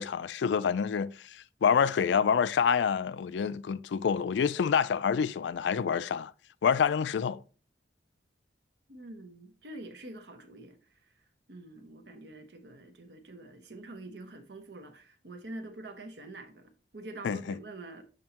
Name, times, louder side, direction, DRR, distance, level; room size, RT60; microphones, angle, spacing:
voice 1, 0.0-6.3 6.6-7.4 17.2-17.6, left 7 dB, 90° left, 0.4 m, -27 dB
voice 2, 8.9-10.8 11.5-18.0, right 2 dB, 75° right, 1.0 m, -46 dB
7.4 x 5.3 x 2.9 m
head